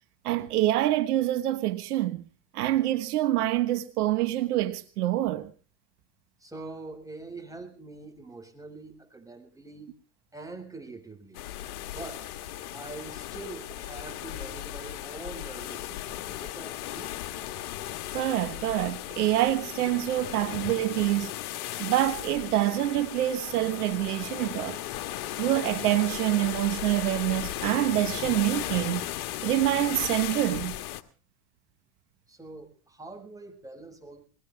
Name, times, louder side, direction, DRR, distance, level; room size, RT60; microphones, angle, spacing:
voice 1, 0.2-2.2 2.5-5.5 18.1-21.3 21.8-24.8 25.4-29.1 29.4-30.8, right 14 dB, 80° right, 1.3 m, -26 dB
voice 2, 6.4-10.0 10.3-11.4 11.9-12.3 12.7-17.1 32.3-34.3, right 3 dB, 5° right, 6.5 m, -44 dB
sound 1, 11.3-31.0, left 13 dB, 70° left, 1.7 m, -36 dB
22.0 x 18.5 x 3.4 m
hypercardioid pair, 80°, 45 cm